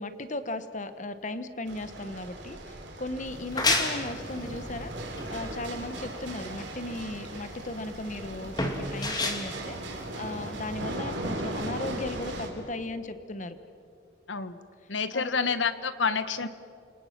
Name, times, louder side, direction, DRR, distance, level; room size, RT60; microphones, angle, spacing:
voice 1, 0.0-13.6 15.1-15.5 16.4-16.5, left 2 dB, 40° left, 11 dB, 1.3 m, -37 dB
sound 1, 1.7-12.5, right 1 dB, 75° right, 3.8 m, -38 dB
sound 2, 3.3-10.7, left 2 dB, 20° left, 2.4 m, -32 dB
voice 2, 14.3-14.6 14.9-16.5, left 5 dB, 80° left, 12 dB, 1.2 m, -28 dB
29.5 x 27.0 x 6.0 m, 2.6 s
head